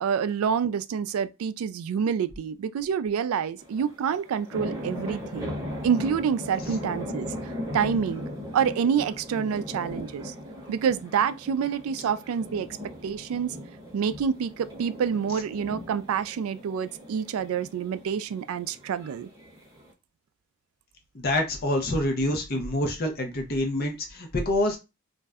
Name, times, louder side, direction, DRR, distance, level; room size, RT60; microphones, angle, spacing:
voice 1, 0.0-5.5 5.8-8.3 8.5-10.3 10.7-12.7 13.0-13.6 13.9-19.3, right 7 dB, 85° right, 0.3 m, -27 dB
sound 1, 3.6-19.9, equal, 15° right, 0.8 m, -38 dB
voice 2, 21.1-24.8, left 1 dB, 45° left, 0.6 m, -26 dB
2.5 x 2.1 x 3.4 m
head